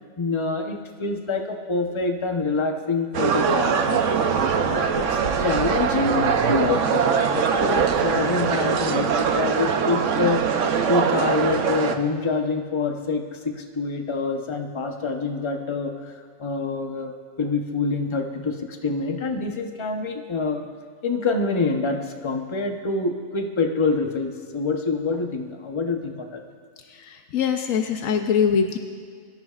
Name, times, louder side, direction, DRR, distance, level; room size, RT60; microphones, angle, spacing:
voice 1, 0.2-4.1 4.6-10.5 10.9-16.1 16.4-20.7 21.0-26.4, left 4 dB, 25° left, 4 dB, 0.9 m, -26 dB
sound 1, 3.1-12.0, right 6 dB, 70° right, 1.1 m, -22 dB
voice 2, 26.9-28.8, left 7 dB, 90° left, 5 dB, 1.2 m, -23 dB
22.5 x 14.5 x 2.5 m, 2.1 s
omnidirectional pair, 1.4 m